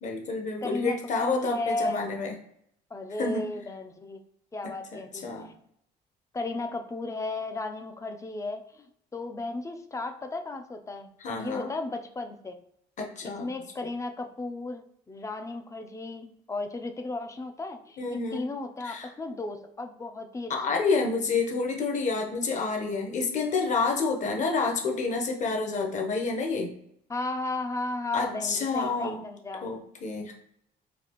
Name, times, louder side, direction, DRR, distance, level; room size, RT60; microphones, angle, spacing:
voice 1, 0.0-2.4 3.2-3.5 4.6-5.5 11.2-11.7 13.0-13.5 18.0-18.5 18.8-19.1 20.5-26.7 28.1-29.3 29.6-30.3, left 4 dB, 45° left, 2 dB, 0.9 m, -29 dB
voice 2, 0.6-2.0 2.9-4.2 4.5-5.3 6.3-8.9 9.1-12.6 13.2-18.0 18.3-20.8 27.1-29.7, left 2 dB, 20° left, 6 dB, 0.4 m, -35 dB
4.1 x 2.4 x 2.9 m, 0.73 s
cardioid pair, 110°, 17 cm